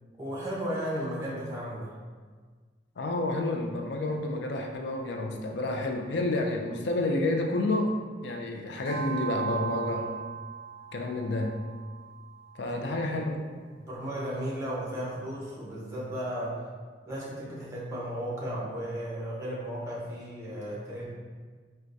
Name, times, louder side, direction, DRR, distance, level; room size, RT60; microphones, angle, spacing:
voice 1, 0.2-1.9 12.6-12.9 13.8-16.7 17.1-21.1, equal, 15° right, -6 dB, 0.8 m, -35 dB
voice 2, 3.0-7.9 8.2-10.1 10.9-11.5 12.6-13.4, left 2 dB, 70° left, 2 dB, 0.4 m, -29 dB
sound 1, 8.8-13.4, right 6 dB, 55° right, 0.6 m, -38 dB
4.4 x 2.2 x 2.6 m, 1.5 s
head